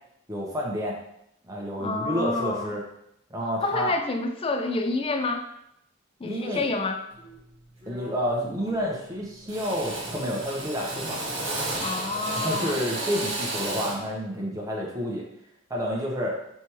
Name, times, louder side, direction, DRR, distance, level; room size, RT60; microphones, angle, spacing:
voice 1, 0.3-1.0 1.5-2.8 3.3-3.9 6.2-6.7 7.9-11.2 12.4-15.2 15.7-16.3, equal, 15° right, -2 dB, 0.8 m, -29 dB
voice 2, 1.8-2.7 3.4-5.5 6.2-7.0 11.7-12.8, left 3 dB, 25° left, 6 dB, 0.3 m, -28 dB
Drill, 7.2-7.4 7.8-8.3 8.6-9.1 9.5-14.1, right 2 dB, 65° right, 1.3 m, -33 dB
4.5 x 3.4 x 3.0 m, 0.77 s
head